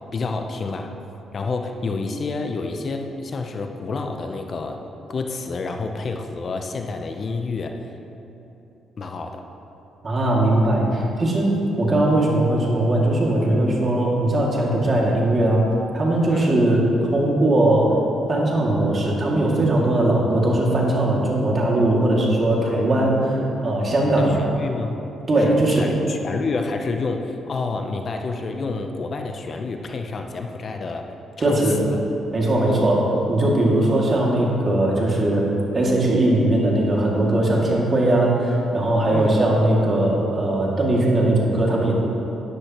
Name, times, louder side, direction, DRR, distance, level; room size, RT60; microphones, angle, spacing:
voice 1, 0.1-0.9 1.3-4.8 5.1-7.8 9.0-9.4 16.3-16.6 24.2-25.0 25.4-31.1 31.4-32.0 32.7-32.9 39.1-39.4, left 3 dB, 45° left, 4 dB, 0.7 m, -29 dB
voice 2, 10.0-15.7 15.9-18.0 18.3-23.3 23.6-24.3 25.3-25.9 31.4-31.8 32.3-35.5 35.7-41.9, right 1 dB, 35° right, -3 dB, 2.3 m, -19 dB
13.0 x 10.0 x 3.0 m, 3.0 s
cardioid pair, 90°, 0 cm